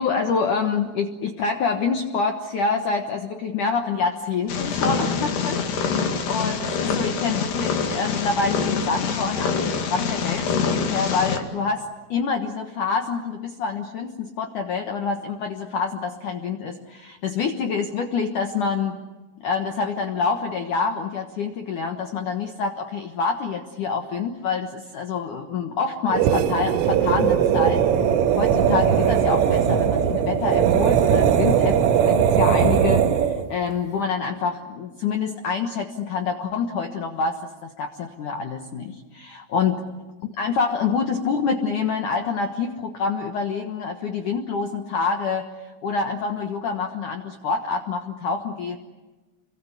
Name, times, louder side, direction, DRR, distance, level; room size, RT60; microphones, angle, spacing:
voice 1, 0.0-11.8 12.1-19.0 19.4-27.8 28.4-39.8 40.4-45.5 45.8-48.8, left 5 dB, 75° left, 5 dB, 1.8 m, -26 dB
Purr, 4.5-11.4, left 5 dB, 60° left, 4.0 m, -25 dB
sound 1, 26.1-33.5, right 8 dB, 85° right, 3.8 m, -19 dB
28.5 x 23.5 x 8.3 m, 1.2 s
omnidirectional pair, 5.7 m